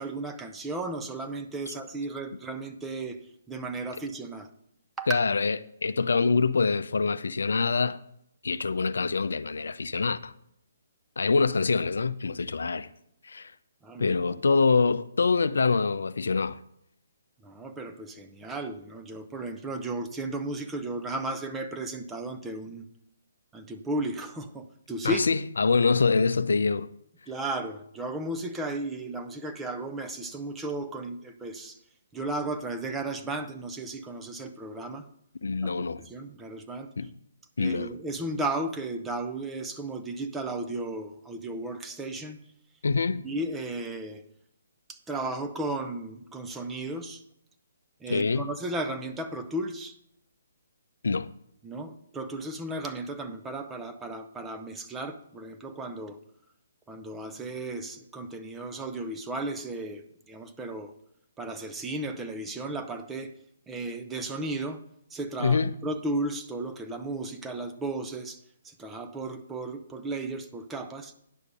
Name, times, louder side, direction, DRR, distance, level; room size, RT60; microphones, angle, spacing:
voice 1, 0.0-3.2 3.5-4.5 5.0-5.2 13.8-14.2 17.4-22.8 23.5-25.2 27.3-31.8 32.1-35.1 35.6-36.9 37.6-42.4 43.2-44.2 44.9-47.2 48.0-50.0 51.6-56.2 56.9-60.9 61.4-63.3 63.7-64.8 65.1-71.1, right 2 dB, 10° right, 0.7 m, -34 dB
voice 2, 5.1-8.0 8.4-10.3 11.2-12.9 13.2-13.5 14.0-16.6 25.0-26.9 35.4-36.0 37.0-37.1 37.6-37.9 42.8-43.2 48.1-48.5 51.0-51.3 65.4-65.7, left 4 dB, 75° left, 0.5 m, -25 dB
10.0 x 6.6 x 5.1 m
figure-of-eight pair, 140°, 0 cm